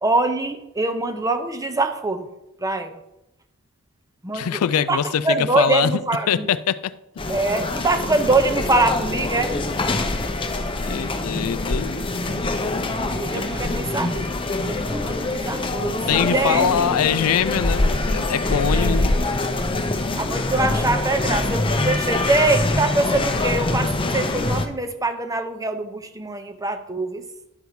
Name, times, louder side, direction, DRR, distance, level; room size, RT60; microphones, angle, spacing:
voice 1, 0.0-2.3 2.6-3.0 4.2-6.5 7.3-9.6 13.1-14.4 14.6-16.7 18.7-19.1 20.2-27.3, right 2 dB, 15° right, 0.7 m, -24 dB
voice 2, 4.3-5.9 6.3-6.9 10.8-12.1 16.1-19.1, left 8 dB, 75° left, 0.4 m, -23 dB
sound 1, 7.2-24.7, left 2 dB, 25° left, 0.7 m, -24 dB
11.5 x 5.3 x 4.6 m
head